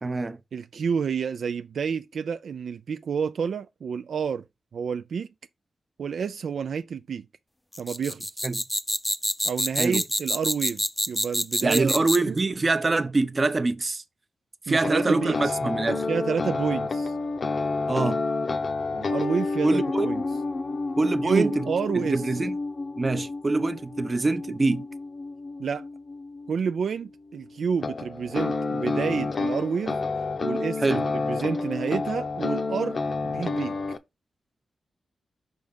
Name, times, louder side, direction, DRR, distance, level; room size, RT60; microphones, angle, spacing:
voice 1, 0.0-0.4 8.4-8.6 9.8-10.0 11.6-14.0 14.7-16.1 17.9-18.2 19.6-20.1 21.0-21.7 21.9-22.6 23.0-24.9 30.8-31.1, right 3 dB, 40° right, 0.7 m, -25 dB
voice 2, 0.5-4.4 4.7-5.3 6.0-7.3 7.8-8.3 9.4-12.0 12.3-12.4 14.7-15.6 16.1-17.2 18.9-20.2 21.2-22.2 25.6-25.8 26.5-30.0 30.4-33.8, right 6 dB, 75° right, 0.3 m, -29 dB
sound 1, 7.7-12.4, equal, 10° left, 0.5 m, -27 dB
sound 2, 14.8-26.7 27.8-34.0, left 3 dB, 55° left, 0.7 m, -29 dB
5.2 x 3.5 x 5.2 m
cardioid pair, 60°, 0 cm